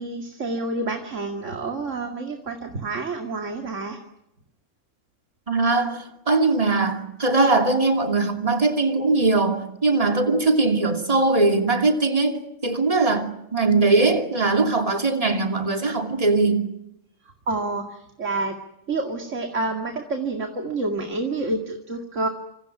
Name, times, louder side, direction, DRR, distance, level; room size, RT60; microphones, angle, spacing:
voice 1, 0.0-4.0 17.5-18.6 18.9-22.3, right 3 dB, 75° right, 2.7 m, -28 dB
voice 2, 5.5-16.7, right 3 dB, 30° right, 2.8 m, -21 dB
27.0 x 27.0 x 6.0 m
omnidirectional pair, 1.3 m